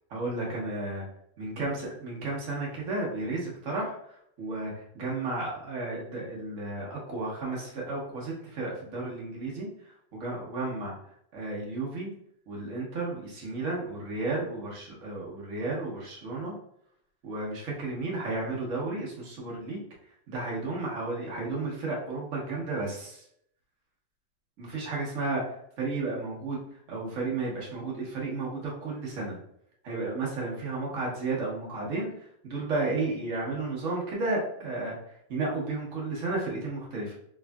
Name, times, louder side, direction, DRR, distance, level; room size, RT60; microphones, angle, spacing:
voice 1, 0.1-1.0 1.4-9.7 10.1-11.0 11.3-12.1 12.5-16.5 17.2-19.8 20.3-23.2 24.6-25.4 25.8-26.6 26.9-29.4 29.8-32.1 32.4-35.0 35.3-37.1, right 3 dB, 50° right, -3 dB, 1.2 m, -33 dB
3.5 x 3.1 x 2.3 m, 0.71 s
omnidirectional pair, 1.9 m